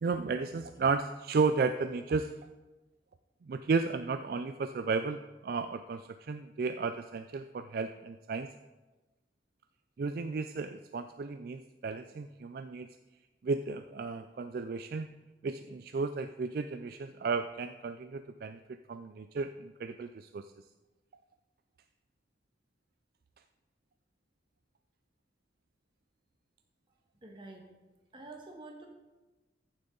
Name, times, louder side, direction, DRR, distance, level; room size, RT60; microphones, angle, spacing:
voice 1, 0.0-2.3 3.5-8.5 10.0-12.9 13.4-15.1 15.4-20.5, right 4 dB, 55° right, 9 dB, 0.3 m, -33 dB
voice 2, 27.2-27.7 28.1-28.9, right 2 dB, 25° right, 1 dB, 1.5 m, -47 dB
14.0 x 7.1 x 3.9 m, 1.2 s
head